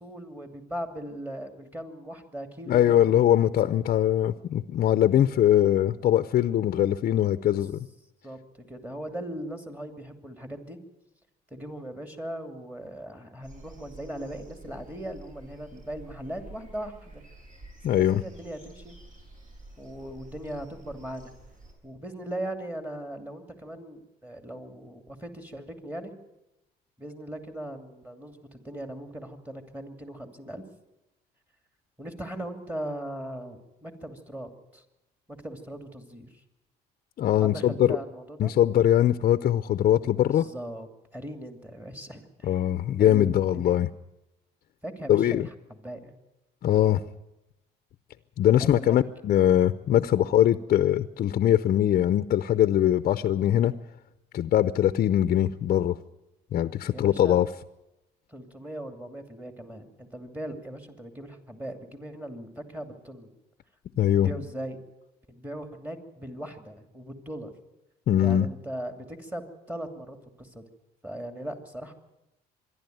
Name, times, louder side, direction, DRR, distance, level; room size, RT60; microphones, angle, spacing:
voice 1, 0.0-3.2 7.5-7.7 8.2-10.8 11.5-17.2 17.9-19.0 19.8-21.3 21.8-26.1 27.0-30.6 32.0-34.8 35.3-36.4 37.4-38.5 40.3-42.6 43.0-43.7 44.8-46.1 48.6-49.0 50.1-50.3 56.9-57.4 58.3-63.3 64.2-64.8 65.3-67.5 68.2-70.7 71.0-71.9, right 1 dB, 10° right, 6 dB, 2.7 m, -39 dB
voice 2, 2.7-7.8 17.8-18.2 37.2-38.0 38.4-40.5 42.4-43.9 45.1-45.5 46.6-47.0 48.4-53.7 54.3-56.0 56.5-57.5 64.0-64.3 68.1-68.5, left 11 dB, 55° left, 12 dB, 0.7 m, -22 dB
sound 1, 13.4-21.7, right 2 dB, 50° right, 7.3 m, -49 dB
25.0 x 11.5 x 9.3 m, 0.93 s
cardioid pair, 110°, 17 cm